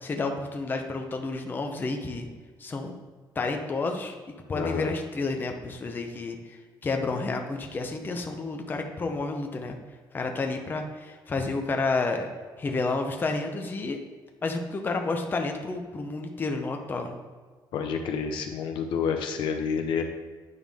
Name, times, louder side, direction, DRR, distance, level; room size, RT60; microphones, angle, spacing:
voice 1, 0.0-2.3 2.6-2.9 3.4-4.2 4.5-6.4 6.8-9.8 10.1-12.3 12.6-14.0 14.4-17.2, left 3 dB, 25° left, 3 dB, 0.7 m, -30 dB
voice 2, 4.5-4.9 17.7-20.0, left 6 dB, 85° left, 5 dB, 0.9 m, -29 dB
9.3 x 5.7 x 3.6 m, 1.5 s
cardioid pair, 155°, 8 cm